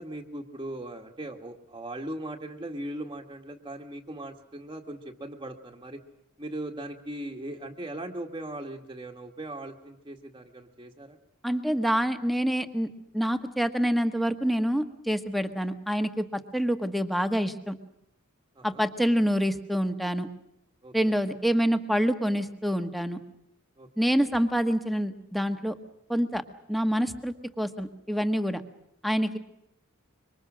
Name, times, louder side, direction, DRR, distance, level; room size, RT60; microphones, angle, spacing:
voice 1, 0.0-6.0 6.4-11.2 18.6-18.8 20.8-21.2 23.8-24.1, right 1 dB, 20° right, 1 dB, 1.7 m, -39 dB
voice 2, 11.4-12.9 13.1-17.8 18.6-20.3 20.9-23.2 24.0-25.7 26.1-26.4 26.7-28.6 29.0-29.4, equal, ahead, 8 dB, 1.5 m, -26 dB
26.0 x 24.5 x 6.3 m, 0.80 s
head